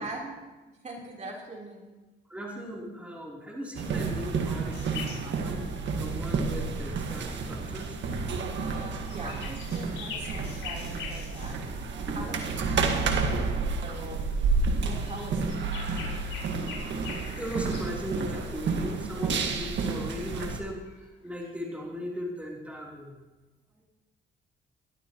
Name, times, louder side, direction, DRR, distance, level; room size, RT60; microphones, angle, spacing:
voice 1, 0.0-1.9 8.6-11.6 11.9-13.4 13.8-14.3 14.8-15.5, right 2 dB, 35° right, -2 dB, 3.6 m, -42 dB
voice 2, 2.3-8.0 17.1-20.8 21.2-23.2, equal, 5° right, -4 dB, 3.4 m, -38 dB
sound 1, 3.7-20.6, right 4 dB, 65° right, 1.6 m, -30 dB
sound 2, 4.7-6.0 7.7-8.2 8.5-11.5 12.8-12.9 13.7-13.9 14.6-17.9 19.3-19.4 19.8-19.9 20.3-20.4 20.7-21.5, left 5 dB, 80° left, 4.7 m, -43 dB
21.5 x 12.5 x 3.0 m, 1.1 s
cardioid pair, 90°, 20 cm